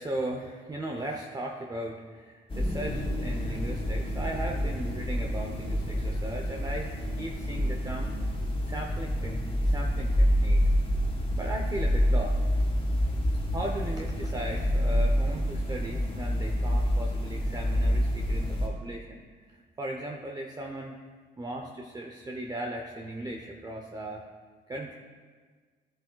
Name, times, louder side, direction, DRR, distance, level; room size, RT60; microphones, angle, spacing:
voice 1, 0.0-8.1 8.6-10.7 11.3-12.4 13.5-19.2 19.5-20.9 21.4-24.2 24.7-24.9, right 1 dB, 20° right, 1 dB, 0.7 m, -37 dB
sound 1, 2.5-18.7, equal, 30° left, 2.2 m, -27 dB
12.5 x 7.7 x 2.3 m, 1.5 s
cardioid pair, 90°, 20 cm